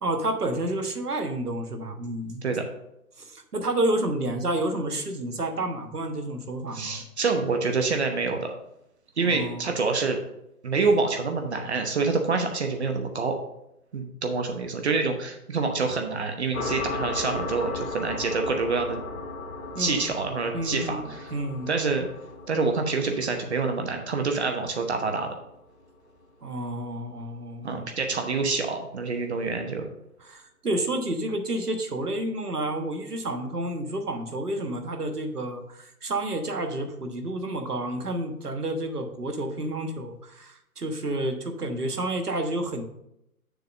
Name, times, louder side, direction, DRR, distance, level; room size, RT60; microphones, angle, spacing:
voice 1, 0.0-2.4 3.2-7.0 9.2-9.7 19.7-20.0 20.5-21.0 21.3-21.7 26.4-27.9 30.2-42.8, right 1 dB, 80° right, 6 dB, 1.4 m, -30 dB
voice 2, 6.7-8.5 9.2-10.2 10.6-13.3 13.9-19.0 19.8-21.3 21.7-22.1 22.5-25.3 27.6-29.9, right 4 dB, 45° right, 4 dB, 0.9 m, -27 dB
sound 1, 16.5-25.8, left 3 dB, 60° left, 1.4 m, -37 dB
6.8 x 3.9 x 6.3 m, 0.81 s
figure-of-eight pair, 140°, 45 cm